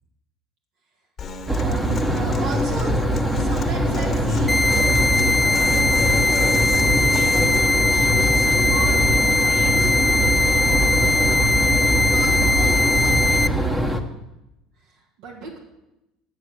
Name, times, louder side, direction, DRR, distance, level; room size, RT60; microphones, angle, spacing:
Human voice / Acoustic guitar, 1.2-7.6, left 5 dB, 35° left, 1.4 m, -34 dB
sound 1, 1.5-14.0, right 1 dB, 10° right, 1.1 m, -22 dB
voice 1, 1.6-3.0 3.4-5.0 7.1-10.4 12.1-13.8 14.8-15.6, right 3 dB, 70° right, -1 dB, 2.0 m, -36 dB
sound 2, 4.5-13.5, left 3 dB, 10° left, 0.3 m, -20 dB
10.5 x 7.2 x 6.5 m, 0.93 s
supercardioid pair, 85°, 0 cm